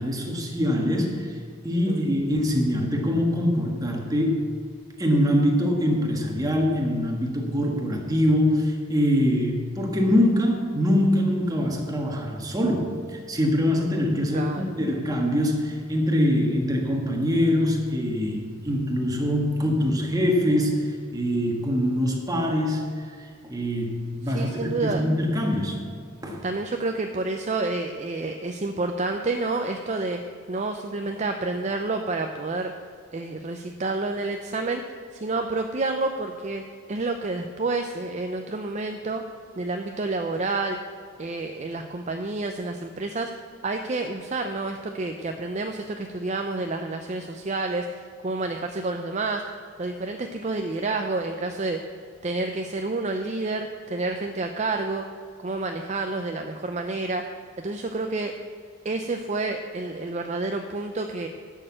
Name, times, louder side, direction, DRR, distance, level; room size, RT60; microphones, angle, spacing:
voice 1, 0.0-1.4 1.6-4.5 5.0-25.8 26.2-26.4, equal, 20° right, 0 dB, 1.5 m, -24 dB
voice 2, 14.3-14.6 24.2-25.0 26.4-30.2 30.5-32.7 33.1-39.2 39.6-40.8 41.2-43.3 43.6-49.5 49.8-51.8 52.2-55.1 55.4-58.3 58.8-61.3, right 3 dB, 35° right, 5 dB, 0.5 m, -29 dB
11.0 x 6.6 x 7.5 m, 2.1 s
head